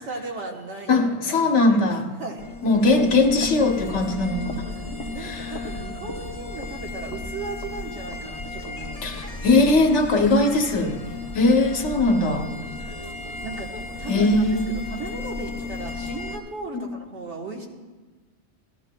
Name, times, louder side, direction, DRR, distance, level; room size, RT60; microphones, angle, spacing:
voice 1, 0.0-2.5 5.1-9.6 11.9-12.7 13.4-13.7 14.0-14.3 14.7-17.7, right 3 dB, 80° right, 0 dB, 1.6 m, -37 dB
voice 2, 0.9-2.1 2.6-4.5 5.2-5.5 9.0-11.0 11.3-12.5 14.1-14.7 16.7-16.9, left 2 dB, 90° left, 4 dB, 1.3 m, -20 dB
sound 1, 2.4-16.4, left 3 dB, 35° left, 0.8 m, -34 dB
17.5 x 14.0 x 2.2 m, 1.3 s
omnidirectional pair, 1.2 m